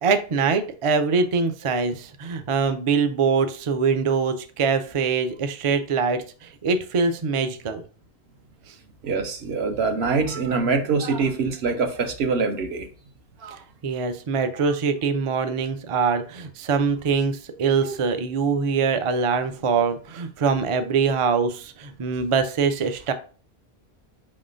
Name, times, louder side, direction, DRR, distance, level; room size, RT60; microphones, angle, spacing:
voice 1, 0.0-7.8 13.8-23.1, right 5 dB, 50° right, 9 dB, 0.3 m, -23 dB
voice 2, 9.0-12.9 13.4-13.6 17.8-17.9, right 4 dB, 70° right, 5 dB, 1.0 m, -24 dB
4.8 x 3.7 x 2.5 m, 0.38 s
omnidirectional pair, 1.1 m